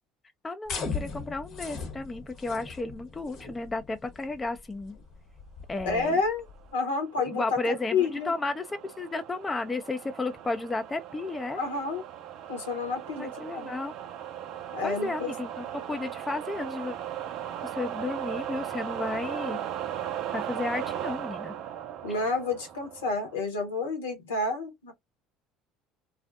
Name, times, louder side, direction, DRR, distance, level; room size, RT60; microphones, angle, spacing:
voice 1, 0.4-5.0 5.7-6.2 7.2-11.6 13.2-13.9 14.8-17.0 17.6-19.6 20.3-21.5, left 3 dB, 20° left, 0.4 m, -33 dB
sound 1, 0.6-6.7, left 5 dB, 55° left, 0.9 m, -39 dB
voice 2, 5.8-6.4 6.7-8.3 11.6-12.0 12.5-13.7 14.7-15.3 22.0-24.9, left 4 dB, 80° left, 0.9 m, -30 dB
sound 2, 6.9-23.4, right 10 dB, 60° right, 0.4 m, -38 dB
2.5 x 2.0 x 2.4 m
hypercardioid pair, 65°, 0 cm